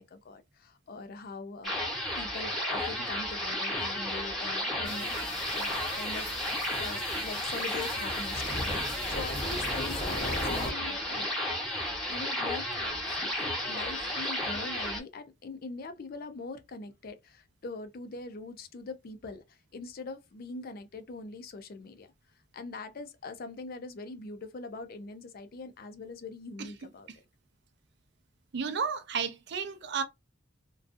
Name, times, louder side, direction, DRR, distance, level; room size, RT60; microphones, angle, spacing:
voice 1, 0.0-1.8 2.2-11.4 12.1-13.3 13.6-22.1 22.5-27.1, left 3 dB, 50° left, 0.4 m, -42 dB
sound 1, 1.6-15.0, left 1 dB, ahead, 0.9 m, -33 dB
sound 2, 4.9-10.7, left 1 dB, 30° left, 0.8 m, -38 dB
voice 2, 28.5-30.0, right 5 dB, 65° right, 0.5 m, -32 dB
2.5 x 2.2 x 2.5 m
head